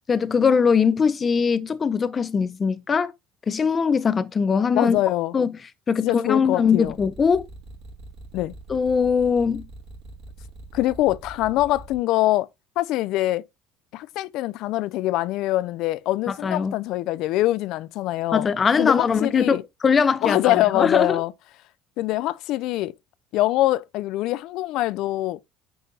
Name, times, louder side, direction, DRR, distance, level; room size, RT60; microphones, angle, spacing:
voice 1, 0.1-3.1 3.5-5.0 5.3-5.5 5.9-7.5 8.7-9.6 16.4-16.8 18.3-21.2, left 6 dB, 30° left, 0.8 m, -21 dB
voice 2, 4.7-5.3 6.0-7.0 8.3-8.5 10.7-12.5 12.8-13.4 13.9-18.5 18.8-19.6 20.2-21.3 22.0-22.9 23.3-25.4, left 16 dB, 70° left, 0.4 m, -24 dB
sound 1, 6.8-11.9, right 1 dB, 65° right, 3.2 m, -42 dB
9.5 x 5.5 x 2.8 m
supercardioid pair, 90°, 0 cm